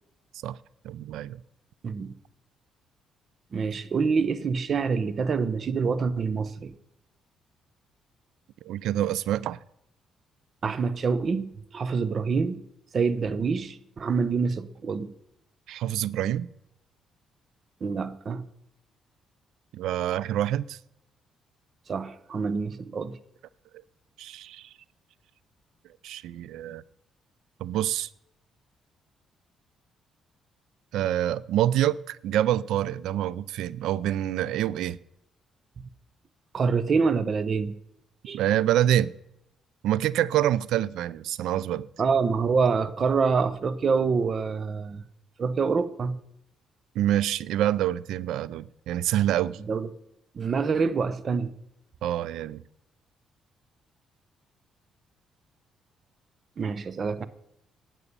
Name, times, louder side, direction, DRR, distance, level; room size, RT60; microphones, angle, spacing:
voice 1, 0.8-1.4 8.6-9.6 15.7-16.5 19.7-20.8 24.2-24.7 26.0-26.8 27.6-28.1 30.9-35.0 38.3-39.1 39.8-41.9 47.0-49.6 52.0-52.6, right 12 dB, 85° right, 0.4 m, -26 dB
voice 2, 3.5-6.7 10.6-12.6 12.9-15.1 17.8-18.4 21.9-23.2 36.5-37.7 38.3-38.4 42.0-45.0 45.4-46.2 49.7-49.9 50.3-51.5 56.6-57.3, right 5 dB, 45° right, 0.9 m, -26 dB
11.0 x 8.1 x 6.8 m
cardioid pair, 90°, 0 cm